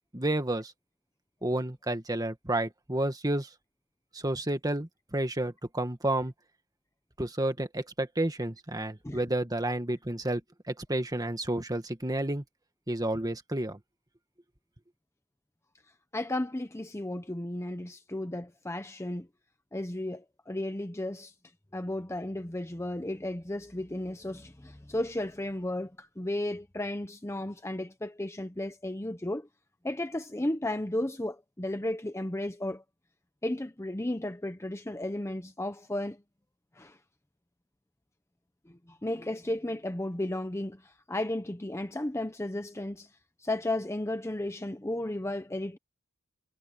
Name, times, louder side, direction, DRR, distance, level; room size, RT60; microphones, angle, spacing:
voice 1, 0.1-0.7 1.4-3.5 4.1-6.3 7.2-10.4 10.7-12.4 12.9-13.8, right 1 dB, 15° right, 1.9 m, -30 dB
voice 2, 16.1-19.3 19.7-21.3 21.7-29.5 29.8-32.8 33.4-36.2 36.8-37.0 38.7-43.1 43.4-45.8, left 1 dB, 15° left, 0.8 m, -34 dB
head